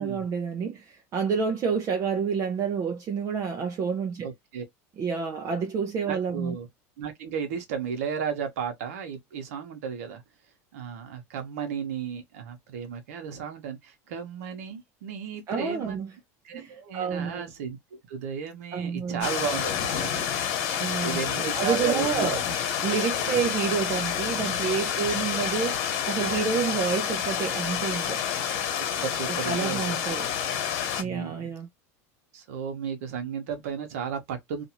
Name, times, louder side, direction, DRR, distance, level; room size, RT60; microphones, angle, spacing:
voice 1, 0.0-4.3 5.0-6.5 15.5-16.1 16.5-17.4 18.7-19.3 20.8-21.2 21.5-22.4 22.8-28.2 29.3-30.3 31.0-31.7, right 6 dB, 40° right, 0.6 m, -29 dB
voice 2, 4.2-4.6 6.0-6.7 7.0-10.2 10.7-16.0 16.4-20.3 21.0-22.3 23.3-23.4 24.8-24.9 26.2-26.5 29.0-30.2 31.0-31.5 32.3-34.6, right 7 dB, 85° right, 1.0 m, -34 dB
sound 1, 19.2-31.0, left 9 dB, 65° left, 1.2 m, -29 dB
2.6 x 2.5 x 2.9 m
supercardioid pair, 110°, 8 cm